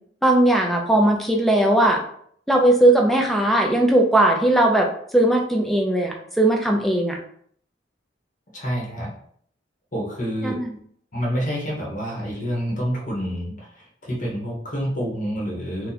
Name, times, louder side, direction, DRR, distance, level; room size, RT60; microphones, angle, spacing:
voice 1, 0.2-2.0 2.5-4.9 5.1-7.2 10.4-10.7, right 1 dB, ahead, 1 dB, 0.5 m, -18 dB
voice 2, 8.5-9.1 9.9-10.6 11.1-15.9, equal, 45° left, -4 dB, 1.1 m, -28 dB
2.8 x 2.3 x 4.0 m, 0.62 s
head